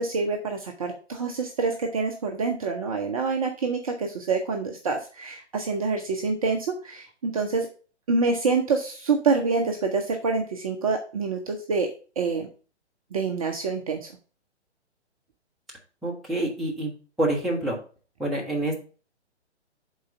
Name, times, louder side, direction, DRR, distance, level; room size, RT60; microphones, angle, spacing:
voice 1, 0.0-7.7 8.1-11.9 12.2-12.5 13.1-14.0, right 4 dB, 30° right, 3 dB, 0.6 m, -26 dB
voice 2, 16.0-16.9 17.2-17.8 18.2-18.8, right 1 dB, ahead, -5 dB, 1.1 m, -27 dB
6.3 x 4.0 x 5.2 m, 0.38 s
figure-of-eight pair, 130°, 35 cm